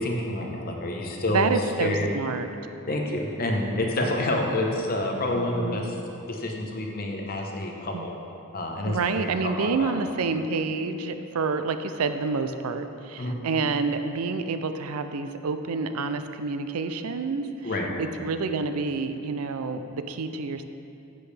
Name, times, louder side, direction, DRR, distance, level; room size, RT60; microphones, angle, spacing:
voice 1, 0.0-1.5 1.8-2.1 2.9-5.9 6.3-8.1 8.5-9.9 13.2-13.3 17.6-17.9, left 1 dB, 40° left, 1 dB, 1.0 m, -28 dB
voice 2, 1.3-2.5 5.3-6.0 7.9-8.1 8.8-20.6, right 4 dB, 75° right, 9 dB, 0.5 m, -28 dB
10.0 x 8.5 x 3.4 m, 2.7 s
head